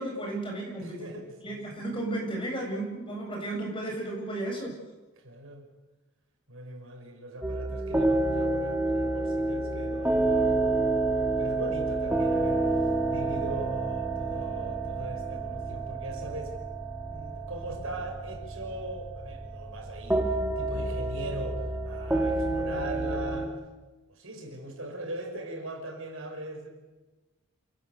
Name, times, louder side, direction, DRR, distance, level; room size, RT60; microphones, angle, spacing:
voice 1, 0.0-1.1 1.4-4.7, right 1 dB, 25° left, 1 dB, 7.7 m, -33 dB
voice 2, 0.8-1.8 5.2-5.6 6.5-12.8 13.1-16.6 17.1-23.5 24.1-26.7, right 1 dB, 70° right, 4 dB, 6.0 m, -40 dB
sound 1, 7.4-23.5, right 2 dB, 10° right, 2.6 m, -29 dB
28.0 x 20.0 x 8.2 m, 1.2 s
head